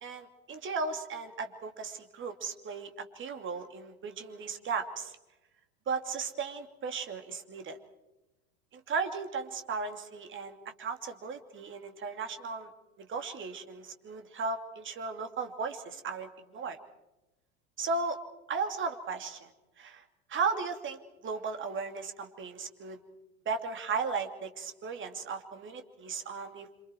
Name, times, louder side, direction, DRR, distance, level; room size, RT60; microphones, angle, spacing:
voice 1, 0.0-5.2 5.9-7.8 8.7-12.7 13.0-16.8 17.8-18.2 18.5-19.5 19.8-20.0 20.3-23.0 23.4-26.7, right 4 dB, 30° right, 7 dB, 2.8 m, -36 dB
27.5 x 27.0 x 4.6 m, 0.99 s
figure-of-eight pair, 85°, 41 cm